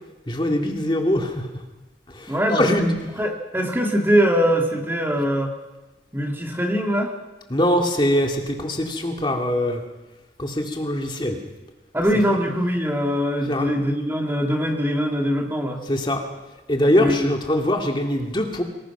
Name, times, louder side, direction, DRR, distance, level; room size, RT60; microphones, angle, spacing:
voice 1, 0.3-1.5 2.1-2.9 7.5-9.8 10.4-11.4 13.5-13.7 15.9-16.2 16.7-18.6, left 1 dB, 25° left, 2 dB, 2.2 m, -22 dB
voice 2, 2.3-2.6 3.2-5.5 6.1-7.1 11.9-15.8 17.0-17.4, equal, 10° right, 2 dB, 2.3 m, -22 dB
25.5 x 20.5 x 6.0 m, 1.1 s
head